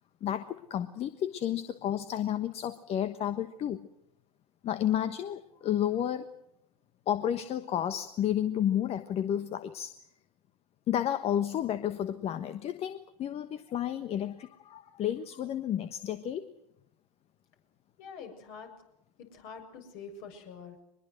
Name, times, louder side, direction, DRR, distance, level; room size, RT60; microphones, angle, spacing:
voice 1, 0.2-3.8 4.6-6.3 7.1-9.9 10.9-16.5, left 10 dB, 30° left, 12 dB, 1.3 m, -31 dB
voice 2, 18.0-18.7 19.2-20.8, left 5 dB, 50° left, 5 dB, 7.3 m, -46 dB
23.5 x 21.5 x 7.9 m, 0.76 s
hypercardioid pair, 100°, 19 cm